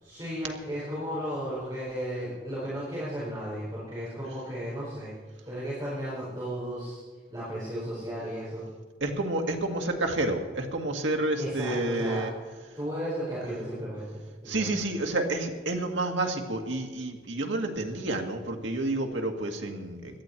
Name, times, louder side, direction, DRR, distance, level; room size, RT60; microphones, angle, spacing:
voice 1, 0.0-5.1 5.5-7.0 7.3-8.6 11.4-12.3 12.7-14.7, equal, 20° right, -10 dB, 5.0 m, -34 dB
voice 2, 9.0-12.3 14.5-20.0, right 2 dB, 90° right, 3 dB, 2.0 m, -29 dB
17.5 x 12.5 x 4.5 m, 1.4 s
head